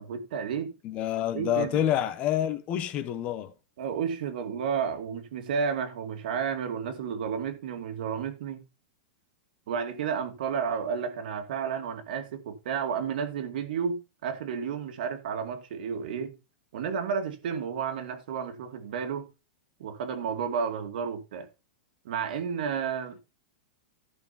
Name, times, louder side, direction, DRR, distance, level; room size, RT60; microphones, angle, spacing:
voice 1, 0.0-0.7 1.3-1.8 3.8-8.6 9.7-16.4 16.7-19.3 19.8-21.5 22.0-23.2, right 6 dB, 55° right, 2.4 m, -32 dB
voice 2, 0.8-3.5, left 11 dB, 25° left, 1.3 m, -28 dB
15.0 x 5.8 x 4.4 m
supercardioid pair, 170°, 6 cm